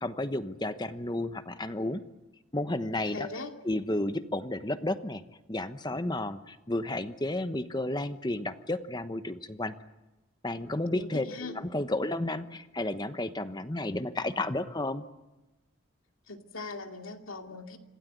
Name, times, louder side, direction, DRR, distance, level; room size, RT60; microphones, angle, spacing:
voice 1, 0.0-2.0 2.5-3.3 3.6-5.2 5.5-9.7 10.4-15.0, left 1 dB, 20° left, 10 dB, 1.0 m, -32 dB
voice 2, 3.1-3.5 10.9-11.6 16.3-17.8, left 3 dB, 85° left, 4 dB, 2.6 m, -40 dB
27.0 x 17.0 x 9.5 m, 1.1 s
head